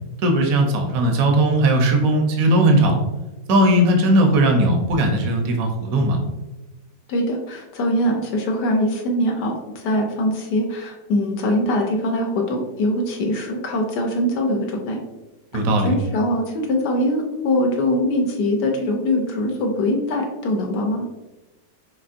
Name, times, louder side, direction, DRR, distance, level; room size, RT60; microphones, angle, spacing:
voice 1, 0.2-3.0 3.5-6.2 15.5-15.9, right 1 dB, 60° right, 3 dB, 1.0 m, -18 dB
voice 2, 7.1-15.0 15.8-21.0, left 1 dB, 70° left, 2 dB, 1.2 m, -22 dB
5.3 x 3.2 x 2.5 m, 1.1 s
omnidirectional pair, 2.0 m